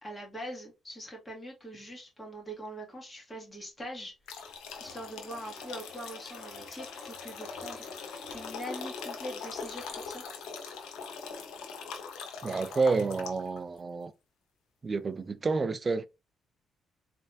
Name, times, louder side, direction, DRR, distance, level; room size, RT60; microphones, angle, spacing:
voice 1, 0.0-4.1 4.8-7.8 8.3-10.2, equal, 20° left, 2.2 m, -43 dB
sound 1, 4.3-13.6, left 5 dB, 90° left, 0.9 m, -42 dB
Gurgling / Toilet flush / Trickle dribble, 4.5-11.5 11.9-12.0 12.5-12.6, left 2 dB, 50° left, 2.4 m, -56 dB
voice 2, 12.4-14.1 14.8-16.1, right 4 dB, 35° right, 0.4 m, -29 dB
4.1 x 3.3 x 2.7 m
cardioid pair, 90°, 0 cm